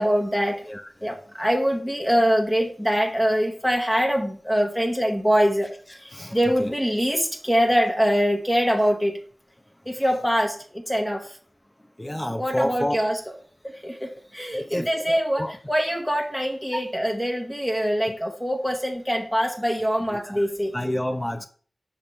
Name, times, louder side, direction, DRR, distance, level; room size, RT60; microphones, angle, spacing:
voice 1, 0.0-0.6 1.0-5.7 6.0-9.2 9.9-11.3 12.4-13.2 13.8-20.7, equal, 5° left, 1.3 m, -23 dB
voice 2, 5.9-6.7 12.0-13.0 14.5-15.6 16.7-16.8 20.0-21.5, equal, 20° left, 0.7 m, -30 dB
5.9 x 3.6 x 5.4 m
cardioid pair, 40°, 0 cm